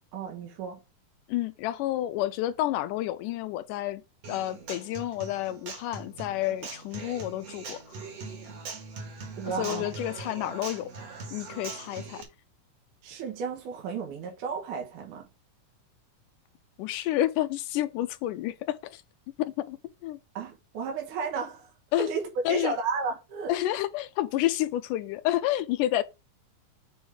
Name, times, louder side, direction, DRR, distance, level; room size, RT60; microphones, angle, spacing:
voice 1, 0.1-0.8 9.4-10.0 13.0-15.3 20.3-23.6, right 5 dB, 70° right, 2.8 m, -33 dB
voice 2, 1.3-4.0 4.3-8.1 9.5-10.9 11.3-12.2 16.8-19.0 19.4-20.2 21.9-22.1 22.5-22.8 23.5-26.0, left 14 dB, 80° left, 2.0 m, -30 dB
Human voice / Acoustic guitar, 4.2-12.2, right 4 dB, 55° right, 2.6 m, -41 dB
7.1 x 4.5 x 3.5 m
omnidirectional pair, 3.8 m